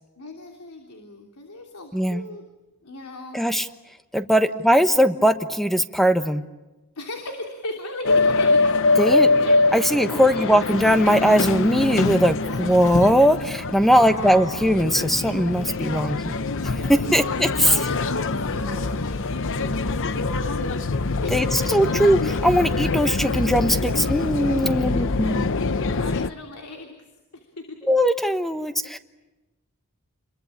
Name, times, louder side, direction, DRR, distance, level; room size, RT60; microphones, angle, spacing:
voice 1, 0.2-2.4 2.8-3.4 4.5-4.9 6.9-8.7 9.1-9.6 9.9-10.5 13.9-14.7 17.0-20.9 21.2-21.9 25.2-26.9 27.3-27.9, left 2 dB, 85° left, 3 dB, 3.2 m, -36 dB
voice 2, 1.9-2.2 3.3-3.7 4.1-6.4 9.0-9.3 9.7-16.3 16.6-17.8 21.3-21.4 21.7-22.2 22.4-25.5 27.9-29.0, equal, ahead, 9 dB, 1.1 m, -20 dB
sound 1, 8.0-26.3, left 3 dB, 60° left, 0.8 m, -24 dB
28.5 x 22.5 x 8.6 m, 1.1 s
head